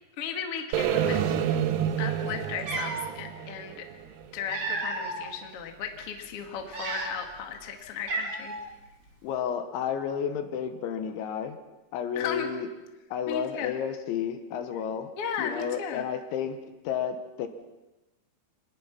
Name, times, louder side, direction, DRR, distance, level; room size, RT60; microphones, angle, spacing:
voice 1, 0.2-1.2 1.5-1.6 2.0-3.9 4.3-8.5 12.2-12.5 13.3-13.7 15.2-16.1, left 7 dB, 50° left, 4 dB, 1.8 m, -35 dB
sound 1, 0.7-4.8, right 9 dB, 80° right, 2.1 m, -29 dB
Cat, 2.1-2.2 2.6-3.1 4.1-5.3 5.8-6.0 6.6-7.4 7.6-7.7 8.1-8.7, right 3 dB, 35° right, 3.1 m, -33 dB
voice 2, 9.2-11.6 11.9-12.7 13.1-15.1 15.4-16.6 16.9-17.5, left 8 dB, 75° left, 8 dB, 3.5 m, -31 dB
25.5 x 20.0 x 5.9 m, 1.0 s
omnidirectional pair, 5.6 m